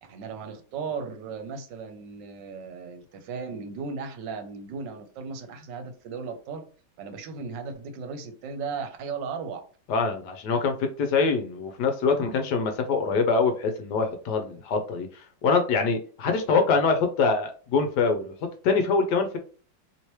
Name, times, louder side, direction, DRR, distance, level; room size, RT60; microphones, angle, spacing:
voice 1, 0.0-6.6 7.0-9.6, right 5 dB, 75° right, 7 dB, 1.3 m, -36 dB
voice 2, 9.9-18.3 18.6-19.4, left 4 dB, 70° left, 6 dB, 1.1 m, -24 dB
3.1 x 2.9 x 3.0 m, 0.41 s
omnidirectional pair, 2.0 m